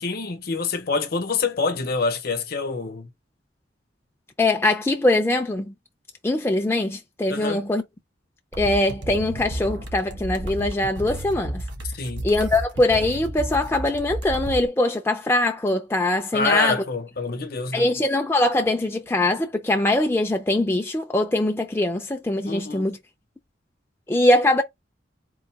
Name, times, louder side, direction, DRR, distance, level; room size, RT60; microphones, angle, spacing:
voice 1, 0.0-3.1 7.3-7.6 11.9-12.3 16.3-17.9 22.5-22.9, left 4 dB, 55° left, 0.9 m, -26 dB
voice 2, 4.4-5.7 6.2-7.8 8.6-11.6 12.2-16.8 17.7-23.0 24.1-24.6, left 2 dB, 15° left, 0.4 m, -22 dB
sound 1, 8.5-14.6, right 1 dB, 80° right, 1.3 m, -32 dB
3.9 x 2.6 x 4.6 m
head